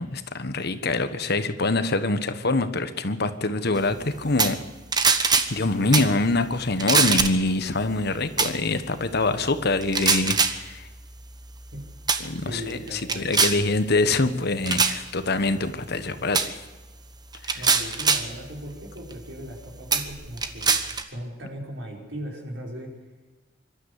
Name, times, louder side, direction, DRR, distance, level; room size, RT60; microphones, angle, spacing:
voice 1, 0.0-4.6 5.5-10.9 12.2-16.6 17.4-17.6, left 2 dB, 60° left, 10 dB, 1.3 m, -25 dB
sound 1, 4.4-4.6 4.9-5.5 5.9-6.1 6.8-7.5 8.4-8.5 9.8-10.6 11.4-11.7 12.1-12.3 12.7-13.6 14.7-15.0 16.3-16.5 17.3-18.3 19.1-19.2 19.9-21.0, right 5 dB, 20° right, 1.2 m, -22 dB
voice 2, 12.5-13.3 17.5-20.8 21.1-22.9, equal, 75° right, 0 dB, 5.3 m, -37 dB
25.0 x 12.5 x 8.3 m, 1.2 s
head